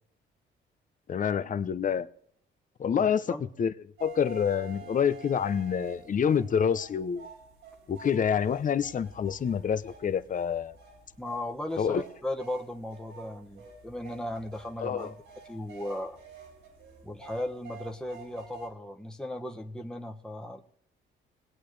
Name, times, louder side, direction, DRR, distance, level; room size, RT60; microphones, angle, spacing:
voice 1, 1.1-2.1 2.8-3.3 3.6-3.7 4.0-7.3 7.9-10.7 11.8-12.0 14.8-15.1, left 7 dB, 40° left, 0.7 m, -27 dB
voice 2, 2.9-3.4 11.2-15.2 15.4-16.2 17.0-20.6, left 1 dB, 5° left, 1.2 m, -36 dB
sound 1, 4.0-18.7, right 5 dB, 90° right, 3.9 m, -50 dB
20.5 x 8.5 x 3.3 m
cardioid pair, 90°, 20 cm